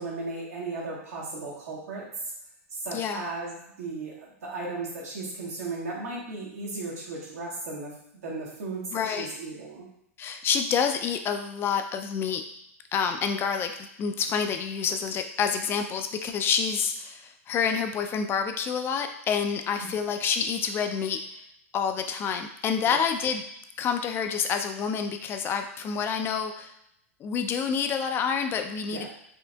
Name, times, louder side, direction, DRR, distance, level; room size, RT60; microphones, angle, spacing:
voice 1, 0.0-2.1 2.7-3.5 3.8-7.9 8.2-9.8 19.8-19.9 22.9-23.0 28.9-29.1, right 3 dB, 80° right, -4 dB, 1.3 m, -35 dB
voice 2, 2.9-3.3 8.9-9.4 10.2-12.4 12.9-13.7 14.0-21.2 21.7-23.4 23.8-26.7 27.2-29.1, left 6 dB, 30° left, 6 dB, 0.3 m, -28 dB
4.4 x 2.5 x 2.2 m, 0.75 s
hypercardioid pair, 105°, 8 cm